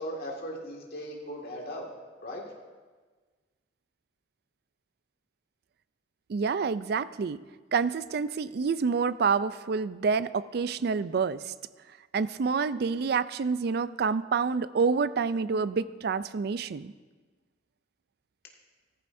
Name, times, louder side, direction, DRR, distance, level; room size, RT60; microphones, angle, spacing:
voice 1, 0.0-1.9 2.2-2.5, equal, 55° left, -1 dB, 2.1 m, -38 dB
voice 2, 6.3-7.4 7.7-11.5 12.1-16.9, right 5 dB, 60° right, 15 dB, 0.4 m, -28 dB
15.0 x 14.0 x 2.7 m, 1.4 s
head